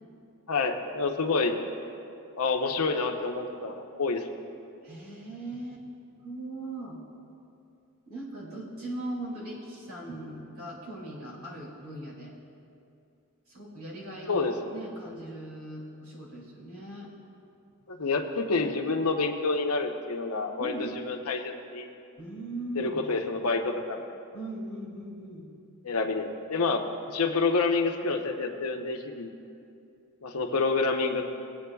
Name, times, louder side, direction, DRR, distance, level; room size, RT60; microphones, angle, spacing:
voice 1, 0.5-1.6 2.4-4.3 14.3-14.5 17.9-21.9 22.8-24.0 25.8-29.3 30.2-31.2, left 3 dB, 85° left, 3 dB, 0.8 m, -28 dB
voice 2, 4.8-5.8 6.2-7.0 8.1-12.3 13.5-17.1 20.6-21.0 22.2-23.1 24.3-25.5, right 1 dB, 70° right, -3 dB, 2.4 m, -39 dB
19.5 x 8.5 x 2.3 m, 2.6 s
head